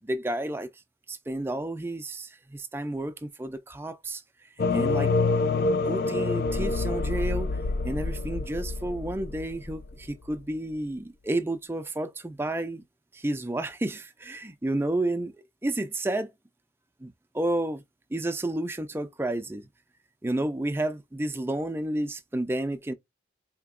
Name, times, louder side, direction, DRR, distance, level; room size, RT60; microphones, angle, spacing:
voice 1, 0.0-0.7 1.1-4.2 4.7-5.1 5.9-12.8 13.1-15.3 15.6-16.3 17.0-17.8 18.1-19.7 20.2-22.9, right 1 dB, 15° right, 0.4 m, -31 dB
sound 1, 4.6-10.3, left 3 dB, 55° left, 0.4 m, -27 dB
4.4 x 2.9 x 2.3 m
head